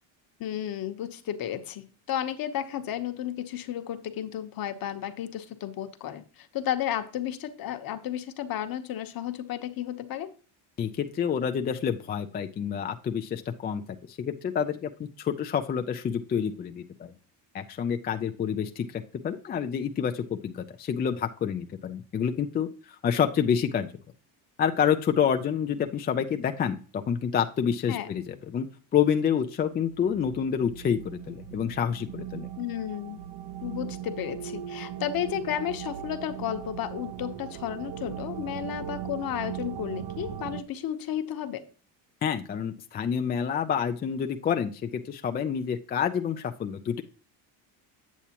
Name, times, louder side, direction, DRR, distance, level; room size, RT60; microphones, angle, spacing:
voice 1, 0.4-10.3 27.9-28.1 32.6-33.2 33.6-41.6, left 10 dB, 45° left, 9 dB, 1.0 m, -33 dB
voice 2, 10.8-13.8 14.1-17.1 17.5-23.9 24.6-28.7 28.9-32.5 42.2-47.0, left 8 dB, 25° left, 6 dB, 0.3 m, -28 dB
sound 1, 29.8-40.6, right 10 dB, 55° right, 0.7 m, -39 dB
8.3 x 7.2 x 2.9 m, 0.39 s
cardioid pair, 115°, 48 cm